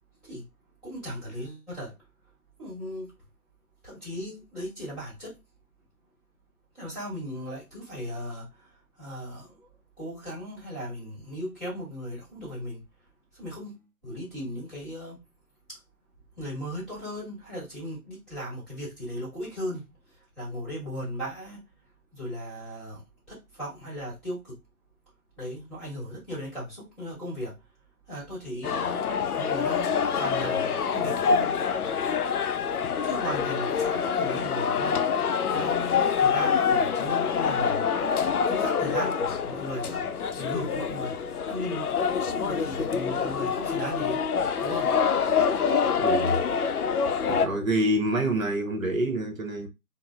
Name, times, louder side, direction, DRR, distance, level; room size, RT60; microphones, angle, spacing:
voice 1, 0.8-1.9 2.6-3.1 3.8-5.3 6.8-8.4 9.0-9.5 10.0-12.8 13.4-15.2 16.4-19.9 20.4-21.6 22.1-23.0 23.3-24.5 25.4-27.5 28.1-31.5 33.0-35.0 35.5-37.8 38.5-40.1 40.3-41.1 41.4-44.2 44.6-44.9, equal, ahead, 1.2 m, -36 dB
sound 1, 28.6-47.5, left 6 dB, 80° left, 0.6 m, -26 dB
voice 2, 46.0-46.4 47.3-49.7, right 1 dB, 65° right, 0.9 m, -26 dB
3.8 x 2.1 x 2.3 m
figure-of-eight pair, 150°, 44 cm